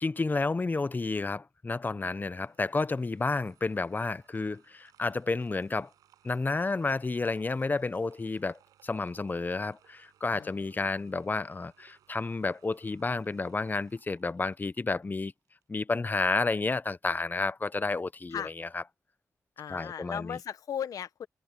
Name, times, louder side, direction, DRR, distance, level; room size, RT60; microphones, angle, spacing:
voice 1, 0.0-5.9 6.2-15.3 15.7-18.8 19.7-20.4, left 3 dB, 30° left, 0.8 m, -31 dB
sound 1, 2.4-15.6 16.0-16.1, right 11 dB, 90° right, 6.8 m, -65 dB
voice 2, 10.3-11.0 18.3-18.5 19.6-21.3, left 8 dB, 75° left, 1.4 m, -38 dB
supercardioid pair, 50°, 6 cm